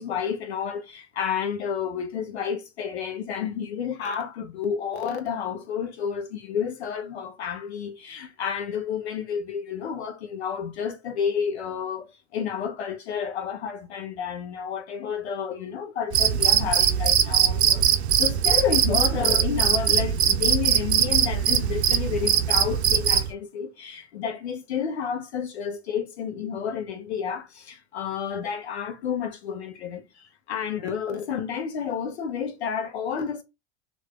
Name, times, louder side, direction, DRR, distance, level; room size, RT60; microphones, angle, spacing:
voice 1, 0.0-17.8 18.1-33.4, left 7 dB, 75° left, 1.0 m, -30 dB
Cricket, 16.1-23.3, right 9 dB, 85° right, 0.5 m, -21 dB
3.3 x 2.7 x 3.4 m
hypercardioid pair, 80°, 33 cm